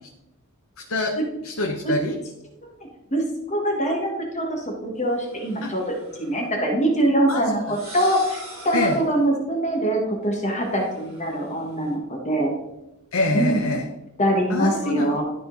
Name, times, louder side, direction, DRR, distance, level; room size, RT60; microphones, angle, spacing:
voice 1, 0.9-2.2 5.6-5.7 7.3-7.7 8.7-9.0 13.1-13.9 14.5-15.2, left 2 dB, 70° left, 1 dB, 0.9 m, -25 dB
voice 2, 3.1-5.8 6.2-12.5 13.3-13.6 14.2-15.2, right 1 dB, 35° left, 0 dB, 1.6 m, -23 dB
sound 1, 5.1-6.4 7.5-9.2 10.6-11.9, right 1 dB, 30° right, 3.0 m, -43 dB
12.5 x 4.3 x 4.0 m, 0.92 s
head